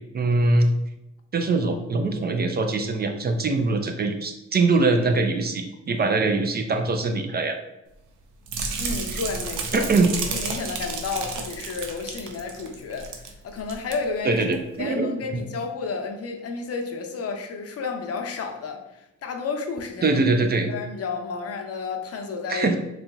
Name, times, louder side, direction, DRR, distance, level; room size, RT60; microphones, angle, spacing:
voice 1, 0.1-0.7 1.3-7.6 9.1-9.2 9.7-10.1 14.2-15.1 20.0-20.7 22.5-22.8, right 3 dB, 35° right, 5 dB, 0.4 m, -22 dB
sound 1, 8.5-13.3 13.6-13.9 14.4-14.5, right 4 dB, 90° right, 0.7 m, -31 dB
voice 2, 8.8-9.9 10.3-14.5 14.8-20.2 20.7-22.8, left 4 dB, 50° left, 4 dB, 0.6 m, -31 dB
4.2 x 2.9 x 2.3 m, 0.92 s
cardioid pair, 90°, 30 cm